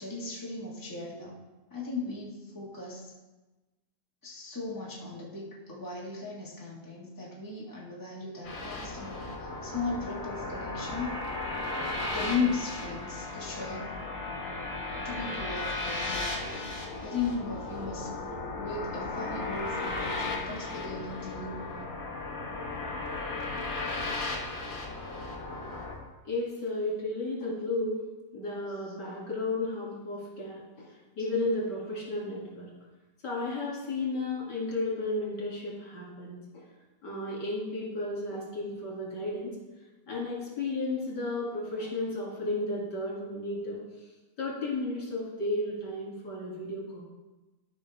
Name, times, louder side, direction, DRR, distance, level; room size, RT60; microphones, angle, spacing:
voice 1, 0.0-1.4 1.7-3.1 4.2-11.2 12.1-13.9 15.0-16.6 17.0-18.2 18.6-21.6, left 4 dB, 10° left, -5 dB, 1.7 m, -36 dB
sound 1, 8.4-26.0, left 2 dB, 40° left, 1.5 m, -35 dB
voice 2, 26.2-28.0 28.3-32.7 33.2-36.6 37.0-39.6 40.1-43.8 44.4-47.0, left 2 dB, 80° left, -5 dB, 3.2 m, -33 dB
13.5 x 5.4 x 3.5 m, 1.1 s
omnidirectional pair, 1.8 m